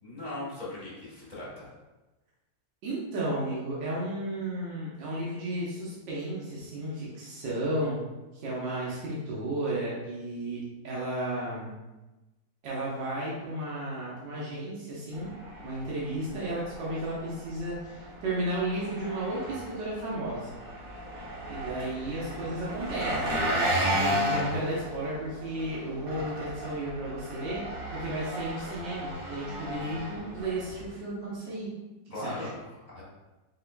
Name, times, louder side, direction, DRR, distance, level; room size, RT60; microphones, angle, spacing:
voice 1, 0.0-1.6 32.1-33.0, left 1 dB, 25° left, -7 dB, 1.2 m, -39 dB
voice 2, 2.8-8.0 8.3-11.7 12.6-15.3 15.6-20.5 21.5-31.7 32.2-32.5, right 1 dB, 75° right, -6 dB, 1.6 m, -33 dB
Engine, 15.1-30.9, equal, 50° right, 0.7 m, -34 dB
4.7 x 3.6 x 2.2 m, 1.1 s
omnidirectional pair, 2.0 m